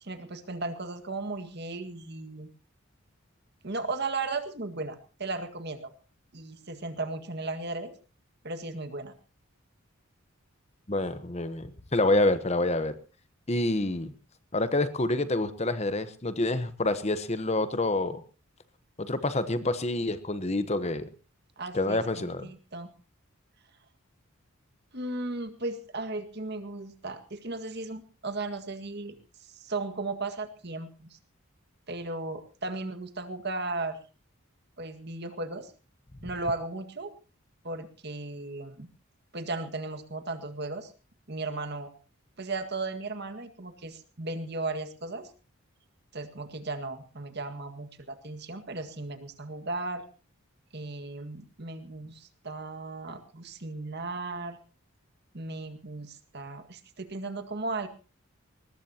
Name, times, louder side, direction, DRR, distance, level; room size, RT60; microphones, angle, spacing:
voice 1, 0.0-2.5 3.6-5.9 6.3-7.9 8.4-9.1 21.6-22.9 24.9-29.2 29.4-31.2 31.9-34.0 34.8-35.7 36.2-37.1 37.6-38.9 39.3-40.9 41.3-41.9 42.4-45.3 46.1-50.1 50.7-54.6 55.3-57.9, right 3 dB, 50° right, 8 dB, 1.9 m, -36 dB
voice 2, 10.9-12.9 13.5-14.1 14.5-18.2 19.0-21.1 21.7-22.5, left 2 dB, 30° left, 12 dB, 1.0 m, -27 dB
21.5 x 19.5 x 2.9 m, 0.34 s
head